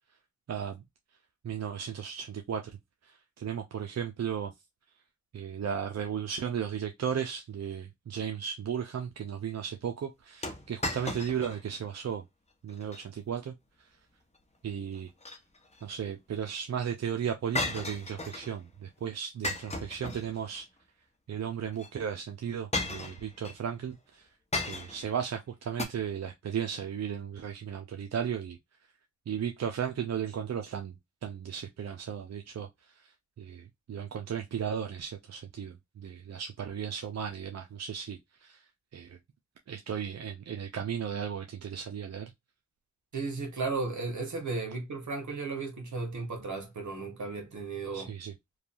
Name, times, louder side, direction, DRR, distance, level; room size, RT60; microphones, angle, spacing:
voice 1, 0.5-0.8 1.4-2.8 3.0-4.5 5.3-12.3 12.6-13.9 14.6-15.1 15.8-20.7 21.3-24.3 24.7-28.6 29.3-31.0 31.2-38.7 38.9-39.2 39.7-42.3 47.9-48.3, right 8 dB, 65° right, 0.5 m, -35 dB
sound 1, 10.4-11.6 12.0-12.1 12.7-13.0 15.0-15.8 17.6-18.5 19.4-20.6 21.7-21.9 22.7-23.6 24.5-25.1 25.8-25.9, left 2 dB, 25° left, 0.9 m, -35 dB
voice 2, 43.1-48.1, right 3 dB, 85° right, 1.2 m, -35 dB
3.1 x 2.3 x 2.5 m
cardioid pair, 45°, 29 cm